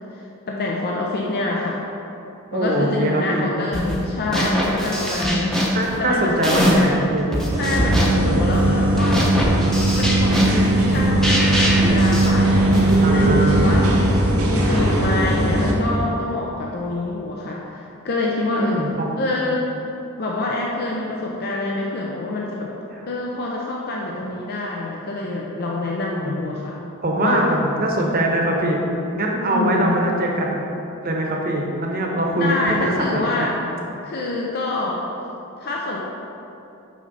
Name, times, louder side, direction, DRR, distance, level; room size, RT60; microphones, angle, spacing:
voice 1, 0.1-1.9 2.5-7.0 7.6-9.3 10.0-19.7 20.2-22.7 23.1-26.8 27.2-27.5 29.5-30.0 32.4-33.6 34.0-35.1 35.6-36.0, left 2 dB, 45° left, -2 dB, 0.6 m, -26 dB
voice 2, 2.5-3.5 5.7-7.3 8.1-8.4 13.0-13.7 18.6-19.2 22.9-23.0 26.1-26.5 27.0-28.8 29.1-30.7 31.0-33.5, right 1 dB, 40° right, 0 dB, 0.9 m, -22 dB
sound 1, 3.7-4.0 4.3-7.0 7.3-13.0, equal, ahead, 0.8 m, -23 dB
sound 2, 7.5-15.7, right 1 dB, 75° right, 1.0 m, -18 dB
6.2 x 5.5 x 4.0 m, 2.9 s
head